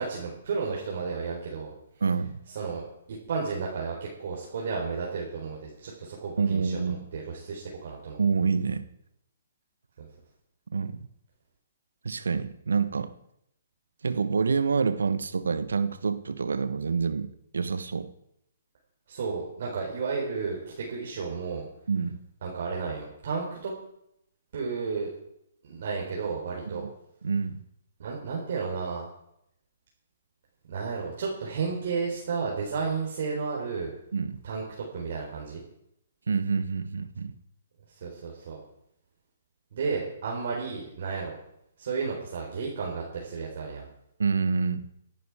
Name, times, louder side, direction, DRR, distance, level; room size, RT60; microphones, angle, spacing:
voice 1, 0.0-1.7 2.5-2.8 3.3-8.2 10.0-10.1 19.1-21.7 22.4-23.7 24.5-25.1 25.6-26.8 28.0-29.1 30.7-33.9 34.4-35.6 38.0-38.6 39.7-41.3 41.8-43.8, right 5 dB, 60° right, -3 dB, 4.1 m, -32 dB
voice 2, 2.0-2.4 6.4-7.0 8.2-8.8 10.7-11.0 12.0-13.1 14.0-18.1 21.9-22.2 26.7-26.9 27.2-27.6 34.1-34.4 36.3-37.3 44.2-44.9, right 5 dB, 80° right, 12 dB, 1.1 m, -27 dB
16.0 x 11.0 x 4.8 m, 0.78 s
hypercardioid pair, 135°, 0 cm